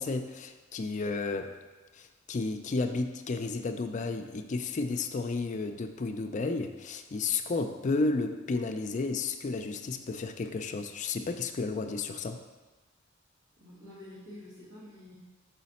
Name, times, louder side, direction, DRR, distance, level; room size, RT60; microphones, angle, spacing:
voice 1, 0.0-1.5 2.0-12.4, left 3 dB, 35° left, 7 dB, 0.4 m, -32 dB
voice 2, 13.6-15.1, left 1 dB, 70° right, -12 dB, 1.9 m, -48 dB
5.6 x 4.2 x 4.2 m, 1.2 s
head